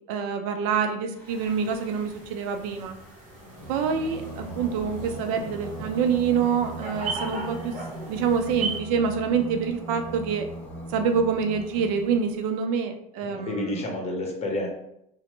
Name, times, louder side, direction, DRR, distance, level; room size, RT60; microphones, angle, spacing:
voice 1, 0.1-3.0 3.7-7.7 8.1-10.5 10.9-13.8, right 6 dB, 75° right, 6 dB, 0.4 m, -26 dB
Singing, 1.1-12.5, right 1 dB, 10° left, 1.2 m, -40 dB
sound 1, 1.3-8.8, right 3 dB, 40° right, 0.9 m, -38 dB
voice 2, 13.2-14.7, left 1 dB, 35° left, 1 dB, 0.8 m, -30 dB
2.9 x 2.0 x 3.1 m, 0.79 s
supercardioid pair, 90°, 19 cm